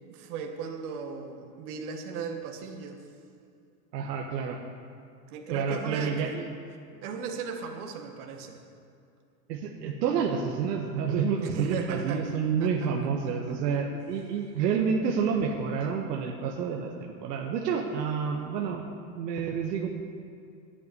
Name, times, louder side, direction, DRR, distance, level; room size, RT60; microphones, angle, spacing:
voice 1, 0.1-3.0 5.3-6.1 7.0-8.6 11.4-12.3 12.6-12.7 13.5-13.6, right 6 dB, 60° right, 3 dB, 2.1 m, -36 dB
voice 2, 3.9-4.6 5.5-6.5 9.5-18.9 19.1-19.9, right 6 dB, 80° right, 0 dB, 1.7 m, -29 dB
11.5 x 8.5 x 9.6 m, 2.5 s
supercardioid pair, 165°, 48 cm